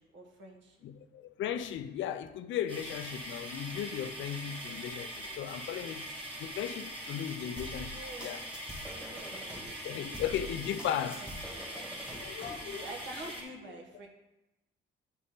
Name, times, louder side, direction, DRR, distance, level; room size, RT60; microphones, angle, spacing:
voice 1, 0.0-0.8 7.9-8.4 9.0-10.2 10.6-11.6 12.7-14.1, right 2 dB, 70° right, 1.4 m, -48 dB
voice 2, 0.8-6.1 6.4-8.4 9.8-11.2 11.8-12.8, left 10 dB, 75° left, 0.5 m, -36 dB
sound 1, 2.7-13.4, right 1 dB, 25° right, 1.8 m, -42 dB
sound 2, 7.6-9.7 10.1-12.6, equal, 5° right, 1.5 m, -45 dB
9.4 x 4.0 x 3.7 m
cardioid pair, 90°, 20 cm